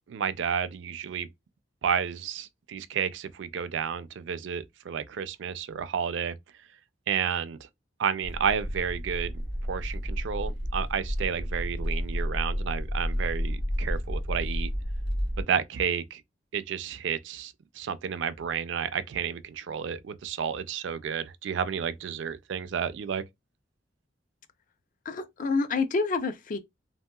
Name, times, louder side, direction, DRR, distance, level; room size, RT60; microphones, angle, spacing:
voice 1, 0.1-1.3 1.8-6.3 7.1-7.7 8.0-9.4 9.7-14.7 15.4-16.2 16.5-23.2, right 7 dB, 70° right, 0.4 m, -31 dB
sound 1, 8.2-15.4, equal, 60° left, 0.8 m, -31 dB
voice 2, 25.1-26.6, left 4 dB, 45° left, 0.4 m, -28 dB
2.9 x 2.7 x 2.2 m
head